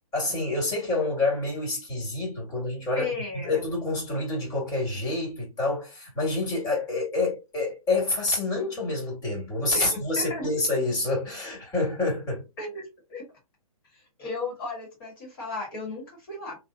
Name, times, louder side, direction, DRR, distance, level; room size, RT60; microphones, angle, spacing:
voice 1, 0.1-12.4, left 2 dB, 20° left, 2.3 m, -28 dB
voice 2, 3.0-3.5 9.7-10.5 12.6-13.3 14.2-16.6, left 3 dB, 40° left, 1.9 m, -35 dB
3.7 x 2.8 x 2.7 m
hypercardioid pair, 140°, 19 cm